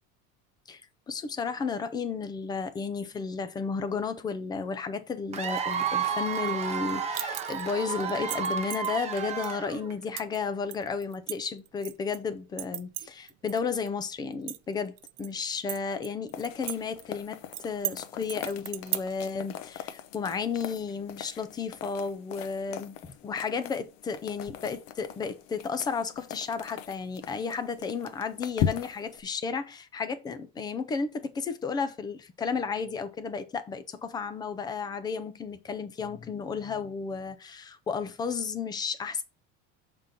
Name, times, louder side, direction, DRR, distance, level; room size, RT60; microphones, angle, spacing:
voice 1, 1.1-23.0 23.2-39.2, left 5 dB, 15° left, 0.4 m, -33 dB
Cheering / Applause / Crowd, 5.3-10.0, right 7 dB, 20° right, 0.8 m, -31 dB
sound 1, 7.1-7.7 8.1-8.9 9.4-9.5 10.2-10.4 10.7-12.2 12.6-13.6 13.9-14.0 14.3-15.3 15.7-16.8 17.0-17.1 17.5-18.0 18.3-19.3, right 17 dB, 50° right, 0.6 m, -35 dB
sound 2, 16.3-29.2, left 9 dB, 45° left, 0.7 m, -39 dB
6.5 x 3.8 x 5.6 m
cardioid pair, 170°, 33 cm